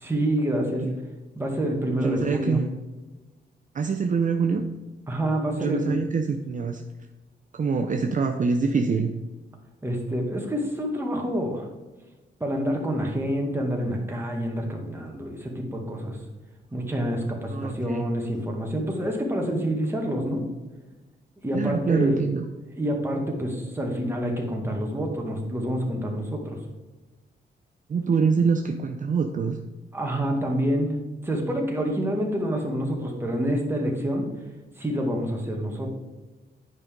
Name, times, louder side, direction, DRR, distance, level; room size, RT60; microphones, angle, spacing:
voice 1, 0.0-0.9 1.4-2.6 5.1-6.0 9.8-11.7 12.4-16.2 16.7-20.4 21.4-22.2 22.8-26.6 29.9-34.3 34.8-35.9, equal, 10° right, 0 dB, 1.9 m, -27 dB
voice 2, 2.0-2.6 3.7-4.6 5.5-6.8 7.5-9.1 17.5-18.0 21.5-22.4 27.9-29.6, right 5 dB, 45° right, 4 dB, 0.6 m, -25 dB
9.7 x 5.3 x 3.7 m, 1.2 s
cardioid pair, 100°, 18 cm